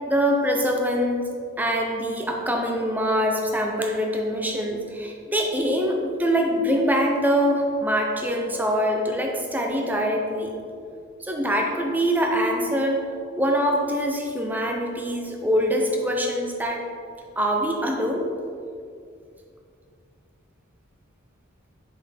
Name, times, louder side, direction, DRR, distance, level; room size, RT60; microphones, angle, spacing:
voice 1, 0.1-1.3 1.6-10.5 11.2-13.0 13.4-16.8 17.4-18.2, equal, 10° right, 1 dB, 0.6 m, -24 dB
6.7 x 4.4 x 3.4 m, 2.3 s
head